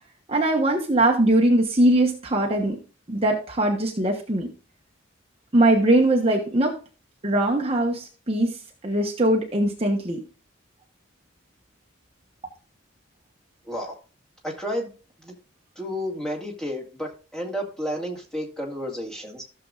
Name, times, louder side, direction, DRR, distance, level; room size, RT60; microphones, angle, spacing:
voice 1, 0.3-2.8 3.1-4.5 5.5-6.8 7.2-10.2, right 1 dB, 30° right, 1 dB, 1.1 m, -21 dB
voice 2, 13.7-14.0 14.4-14.9 15.2-15.3 15.8-19.4, equal, 5° left, -2 dB, 2.0 m, -31 dB
15.0 x 6.9 x 2.5 m, 0.35 s
head